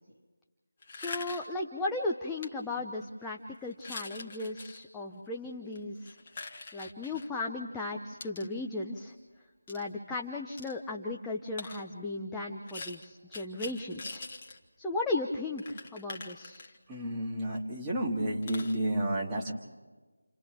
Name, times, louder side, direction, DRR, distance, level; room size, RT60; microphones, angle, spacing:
sound 1, 0.8-1.6 2.4-2.5 3.0-3.2 3.7-4.8 5.7-7.3 8.2-8.5 9.7-9.8 10.6-10.8 11.6-11.9 12.7-14.6 14.9-15.0 15.2-15.3 15.6-17.0 17.5-17.6 17.9-18.0 18.4-18.8, left 3 dB, 30° left, 1.2 m, -43 dB
voice 1, 0.9-6.1 6.7-9.1 9.7-14.2 14.8-16.6, left 2 dB, 5° left, -2 dB, 0.6 m, -36 dB
voice 2, 16.9-19.5, right 1 dB, 10° right, -4 dB, 1.9 m, -31 dB
29.5 x 27.5 x 3.5 m, 1.3 s
figure-of-eight pair, 165°, 0 cm